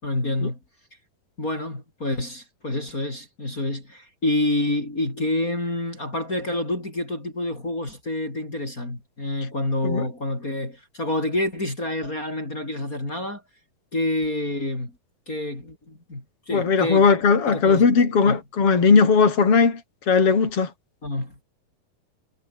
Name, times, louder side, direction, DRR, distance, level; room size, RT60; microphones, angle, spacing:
voice 1, 0.0-0.6 1.4-13.4 13.9-15.0 15.3-17.0 17.5-17.9 18.3-18.4 21.0-21.4, left 1 dB, 20° left, 5.9 m, -28 dB
voice 2, 16.5-19.8 20.1-20.7, left 5 dB, 40° left, 5.1 m, -18 dB
omnidirectional pair, 4.1 m